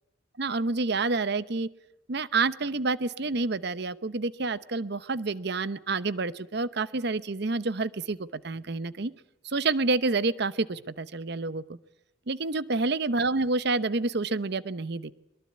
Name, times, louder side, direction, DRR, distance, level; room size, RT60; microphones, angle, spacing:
voice 1, 0.4-1.7 2.1-9.1 9.4-11.8 12.3-15.1, right 3 dB, 60° right, 16 dB, 0.8 m, -28 dB
22.5 x 22.0 x 8.6 m, 0.83 s
head